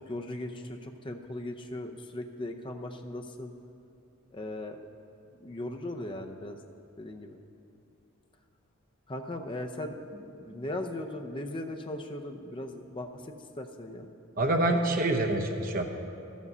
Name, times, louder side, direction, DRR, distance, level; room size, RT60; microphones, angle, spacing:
voice 1, 0.0-3.5 4.3-4.8 5.4-6.6 7.0-7.4 9.1-9.9 10.2-14.1, left 1 dB, 25° left, 4 dB, 0.6 m, -38 dB
voice 2, 14.4-15.8, right 1 dB, 40° right, 3 dB, 0.9 m, -26 dB
12.5 x 7.3 x 6.7 m, 2.7 s
head